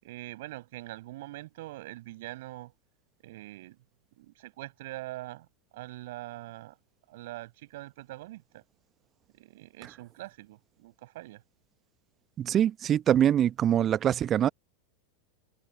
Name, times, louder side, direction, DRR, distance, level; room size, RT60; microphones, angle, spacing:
voice 1, 0.0-2.7 3.2-3.8 4.2-5.5 5.7-6.8 7.1-8.6 9.3-11.4, right 17 dB, 55° right, 7.0 m, -43 dB
voice 2, 12.4-14.5, right 10 dB, 25° right, 1.0 m, -24 dB
figure-of-eight pair, 90°, 0 cm